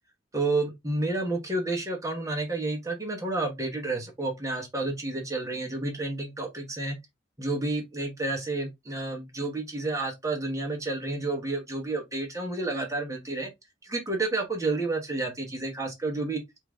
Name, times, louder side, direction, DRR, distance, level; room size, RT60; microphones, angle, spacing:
voice 1, 0.3-7.0 7.4-13.5 13.8-16.4, right 2 dB, 15° right, 1.1 m, -30 dB
5.4 x 2.7 x 3.5 m
head